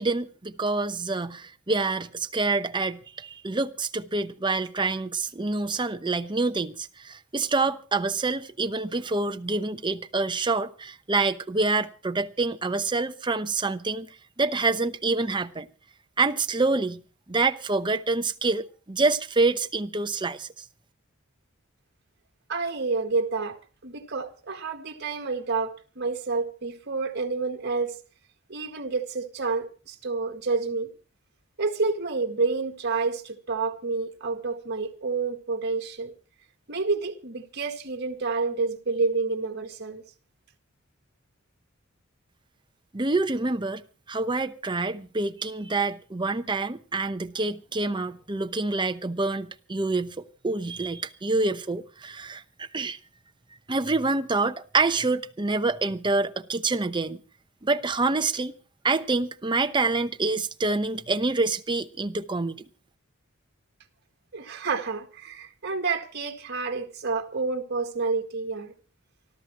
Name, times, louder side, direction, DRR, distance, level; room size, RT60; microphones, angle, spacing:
voice 1, 0.0-14.1 14.4-15.7 16.2-17.0 17.3-20.5 42.9-43.8 44.1-53.0 53.7-57.2 57.6-58.5 58.8-62.6, right 3 dB, 25° right, 0.8 m, -27 dB
voice 2, 22.5-23.6 23.8-27.9 28.5-30.9 31.6-36.1 36.7-40.0 64.3-68.7, right 4 dB, 55° right, 1.9 m, -29 dB
28.5 x 12.5 x 3.0 m
head